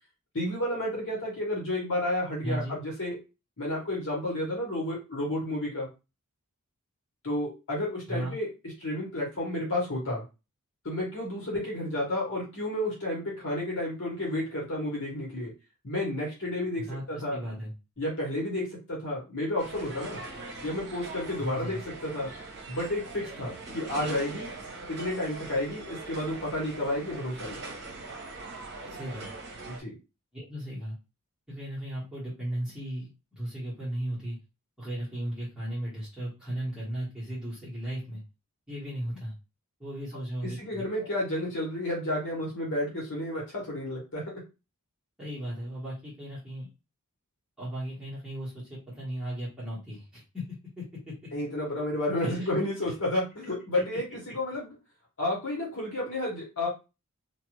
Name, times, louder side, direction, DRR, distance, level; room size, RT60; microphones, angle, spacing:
voice 1, 0.3-3.2 3.6-5.9 7.2-8.5 8.8-10.2 10.8-15.5 15.8-17.4 18.0-20.2 20.6-22.3 22.7-24.5 24.9-27.6 29.7-29.9 40.6-44.2 51.3-54.7 55.2-56.7, left 1 dB, 60° left, -3 dB, 1.3 m, -31 dB
voice 2, 2.4-2.8 8.1-8.4 16.8-17.7 21.4-21.8 28.8-29.3 30.3-31.0 31.5-34.4 34.8-38.2 38.7-39.3 39.8-41.1 45.2-46.7 47.6-50.4 50.8-51.1 52.2-52.5, right 1 dB, 5° right, -10 dB, 1.3 m, -36 dB
sound 1, 19.6-29.8, right 3 dB, 50° right, 0.9 m, -41 dB
2.5 x 2.5 x 3.0 m, 0.28 s
head